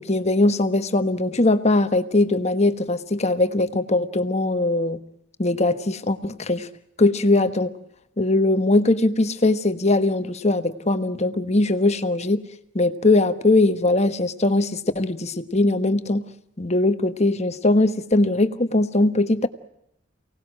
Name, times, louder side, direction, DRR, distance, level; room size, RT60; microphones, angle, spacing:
voice 1, 0.0-5.0 5.4-6.7 7.0-7.7 8.2-12.4 12.7-16.2 16.6-19.5, left 2 dB, 35° left, 10 dB, 1.3 m, -20 dB
29.0 x 19.0 x 7.6 m, 0.80 s
head